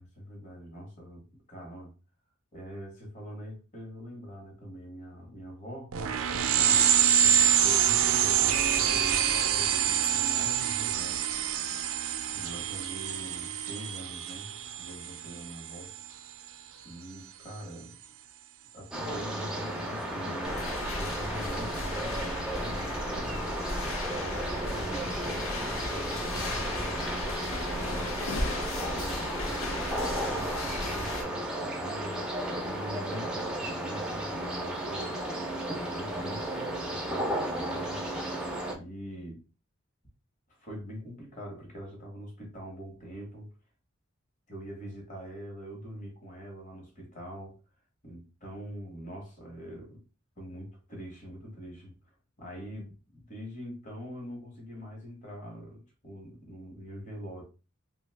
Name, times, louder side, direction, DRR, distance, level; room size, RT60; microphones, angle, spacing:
voice 1, 0.0-1.9 2.5-6.0 6.6-11.2 12.3-14.5 14.8-15.9 16.8-18.0 18.7-23.5 24.0-28.1 28.9-32.3 32.5-35.2 35.8-38.0 38.7-39.4 40.5-43.5 44.5-47.6 48.0-50.0 50.4-51.9 52.4-57.4, equal, 35° left, 1.0 m, -43 dB
sound 1, 5.9-16.1, right 9 dB, 75° right, 0.4 m, -26 dB
sound 2, 18.9-38.7, right 1 dB, 5° right, 0.4 m, -34 dB
sound 3, 20.4-31.2, left 2 dB, 70° left, 0.6 m, -36 dB
2.6 x 2.3 x 3.3 m
head